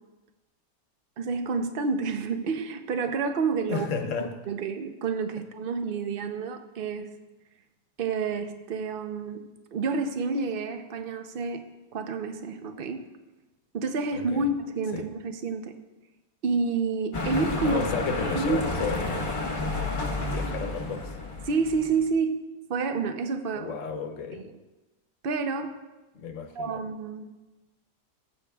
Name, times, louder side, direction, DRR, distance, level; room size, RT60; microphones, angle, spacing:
voice 1, 1.2-3.9 4.5-7.1 8.0-13.0 13.7-15.7 16.4-17.8 18.3-18.7 21.5-22.4 22.7-23.7 24.3-24.5 25.2-25.8 26.6-27.4, right 4 dB, 60° right, 7 dB, 0.5 m, -29 dB
voice 2, 3.7-4.4 14.1-14.5 14.9-15.1 17.6-19.3 19.6-19.9 20.3-21.2 23.5-24.5 26.1-26.8, left 5 dB, 55° left, 6 dB, 1.1 m, -33 dB
sound 1, 17.1-22.1, left 2 dB, 35° left, 1.1 m, -30 dB
17.5 x 8.1 x 2.3 m, 1.1 s
omnidirectional pair, 1.8 m